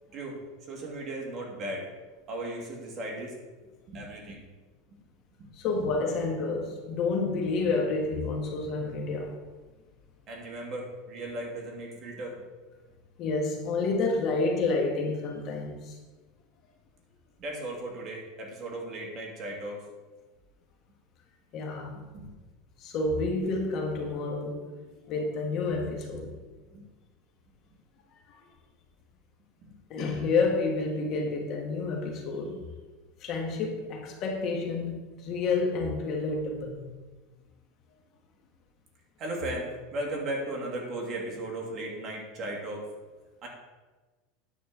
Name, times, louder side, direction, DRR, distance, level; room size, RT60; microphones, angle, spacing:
voice 1, 0.7-1.9 2.3-3.3 3.9-4.4 10.3-12.4 17.4-19.8 22.1-22.3 26.7-26.8 29.6-29.7 39.2-42.8 43.4-43.5, right 1 dB, 30° right, -1 dB, 2.2 m, -36 dB
voice 2, 5.5-9.4 13.2-16.0 21.5-21.9 22.8-24.6 25.0-26.3 28.3-28.4 29.9-32.6 33.2-34.9 35.2-36.8, left 3 dB, 40° left, 1 dB, 1.5 m, -29 dB
9.4 x 4.4 x 6.8 m, 1.3 s
supercardioid pair, 150°, 0 cm